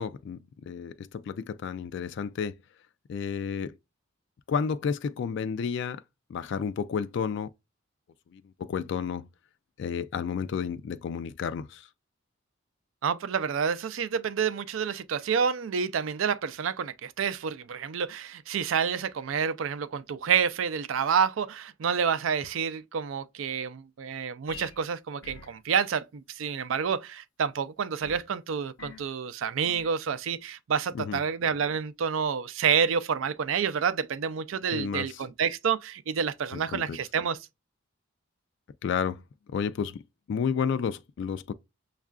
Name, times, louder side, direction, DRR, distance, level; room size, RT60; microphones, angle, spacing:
voice 1, 0.0-2.6 3.1-3.7 4.5-6.0 6.3-7.5 8.3-9.3 9.8-11.9 30.9-31.2 34.7-35.2 36.5-37.0 38.8-39.2 39.5-40.0 40.3-41.5, left 6 dB, 65° left, 0.3 m, -31 dB
voice 2, 13.0-37.4, right 7 dB, 80° right, 0.4 m, -28 dB
sound 1, 24.5-24.8 25.2-25.6 28.0-28.3 28.8-29.1 29.6-29.9, left 5 dB, 80° left, 0.7 m, -46 dB
6.3 x 2.4 x 2.3 m
head